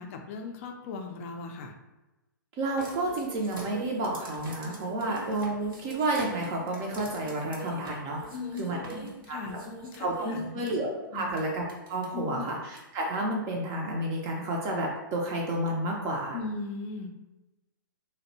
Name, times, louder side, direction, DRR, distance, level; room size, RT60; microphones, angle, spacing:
voice 1, 0.0-1.7 8.3-10.5 11.1-11.4 12.1-12.5 16.3-17.1, left 4 dB, 40° left, 4 dB, 0.3 m, -38 dB
voice 2, 2.6-9.0 9.3-9.4 10.0-16.4, right 1 dB, 30° right, -1 dB, 0.4 m, -31 dB
sound 1, 2.8-10.7 11.4-11.5 11.7-12.1 12.8-12.9, right 2 dB, 75° right, 0.8 m, -44 dB
2.7 x 2.0 x 2.6 m, 1.0 s
hypercardioid pair, 125°, 12 cm